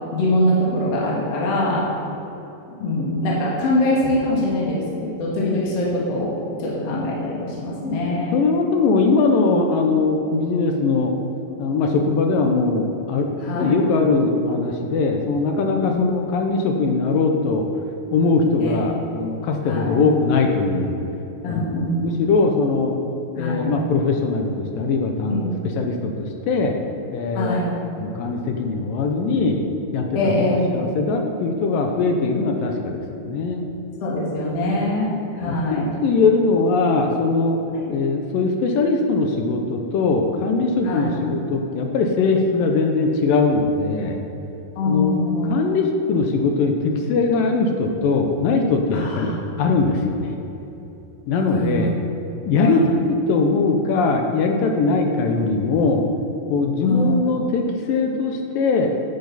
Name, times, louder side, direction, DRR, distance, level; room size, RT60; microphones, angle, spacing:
voice 1, 0.1-1.8 2.8-6.3 6.6-8.4 9.9-10.0 13.4-13.7 15.8-16.1 18.6-18.8 19.6-20.0 21.4-22.0 23.4-23.7 25.3-25.4 27.3-27.7 30.1-30.7 34.0-35.9 37.7-37.9 40.8-41.2 44.8-45.6 48.9-49.3 51.5-51.9 52.6-52.8 56.8-57.1, left 1 dB, 50° left, -5 dB, 2.5 m, -23 dB
voice 2, 8.3-11.1 11.6-13.3 13.6-17.7 18.1-21.0 21.4-21.7 22.0-23.0 23.4-25.4 25.8-26.8 27.1-27.6 28.0-29.6 29.9-30.5 30.7-33.7 35.5-37.6 37.9-44.2 44.9-45.2 45.5-49.3 49.6-50.3 51.3-51.9 52.5-52.9 53.3-56.0 56.5-58.9, left 4 dB, 75° left, 3 dB, 2.2 m, -21 dB
10.0 x 8.9 x 4.1 m, 3.0 s
omnidirectional pair, 4.4 m